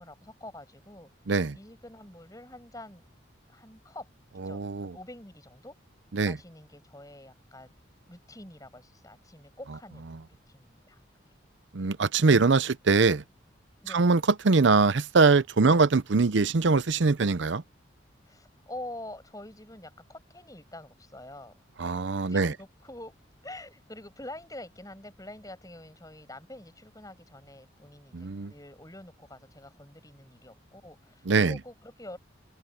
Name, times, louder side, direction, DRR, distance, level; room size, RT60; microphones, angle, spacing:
voice 1, 0.0-1.1 1.5-3.0 3.5-4.1 4.5-5.8 6.2-7.7 8.1-10.1 10.5-11.0 11.8-11.9 13.8-14.1 15.7-15.8 18.3-21.5 21.8-23.1 23.4-32.2, left 1 dB, 20° left, 7.3 m, -46 dB
voice 2, 1.3-1.6 4.4-4.9 6.1-6.4 11.7-13.2 13.9-17.6 21.8-22.5 28.1-28.5 31.3-31.6, right 4 dB, 70° right, 0.7 m, -23 dB
head